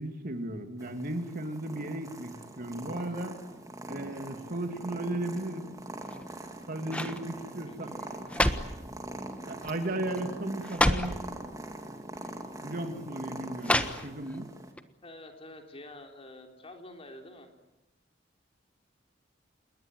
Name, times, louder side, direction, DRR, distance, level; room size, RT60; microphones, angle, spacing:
voice 1, 0.0-3.4 3.9-5.7 6.7-8.0 9.5-11.2 12.6-14.5, right 1 dB, 50° right, 6 dB, 2.8 m, -35 dB
Purr, 0.8-14.7, right 1 dB, 20° right, 2.9 m, -43 dB
sound 1, 6.0-6.5 6.9-7.2 8.0-8.8 9.6-9.9 10.2-10.3 10.6-11.2 12.1-12.3 13.6-14.4 14.8-14.9, left 1 dB, 5° left, 1.4 m, -28 dB
voice 2, 7.6-8.1 15.0-17.5, left 1 dB, 30° left, 3 dB, 3.9 m, -48 dB
28.5 x 21.5 x 9.3 m, 0.97 s
head